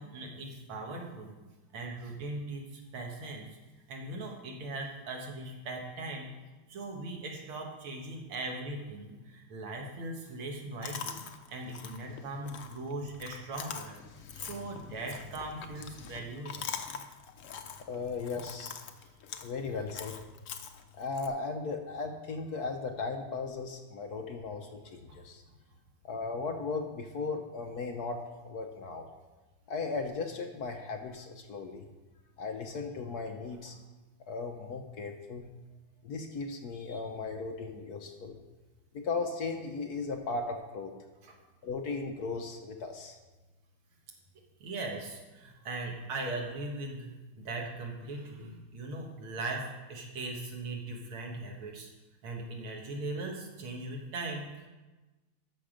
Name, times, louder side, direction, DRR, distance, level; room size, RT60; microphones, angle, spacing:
voice 1, 0.0-1.3 1.7-3.5 3.9-6.3 6.7-11.2 11.5-14.0 14.3-16.7 25.1-25.2 41.2-41.4 44.6-51.9 52.2-54.7, right 2 dB, 90° right, 1 dB, 2.4 m, -39 dB
Chewing mastication, 10.8-21.3, left 7 dB, 85° left, 0.6 m, -44 dB
voice 2, 17.8-18.7 19.4-20.2 20.9-25.4 26.0-29.1 29.7-31.9 32.4-33.8 34.3-35.5 36.0-38.4 38.9-40.9 41.6-43.2, left 4 dB, 60° left, 4 dB, 1.1 m, -37 dB
13.0 x 6.4 x 5.1 m, 1.2 s
omnidirectional pair, 2.3 m